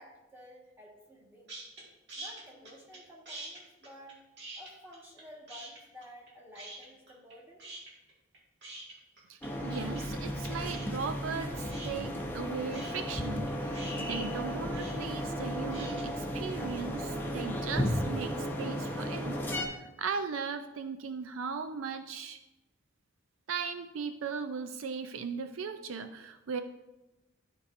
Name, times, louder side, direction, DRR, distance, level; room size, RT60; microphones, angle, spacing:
voice 1, 0.0-1.5 2.1-4.2 4.5-7.6, equal, 10° right, -3 dB, 1.5 m, -52 dB
sound 1, 1.5-1.8 2.1-3.0 3.3-5.2 5.5-6.3 6.6-7.3 7.6-16.0, right 2 dB, 60° right, 2.1 m, -45 dB
voice 2, 9.3-22.4 23.5-26.6, right 5 dB, 75° right, 8 dB, 0.4 m, -38 dB
sound 2, 9.4-19.7, equal, 10° left, 0.7 m, -34 dB
12.5 x 4.7 x 2.6 m, 1.0 s
head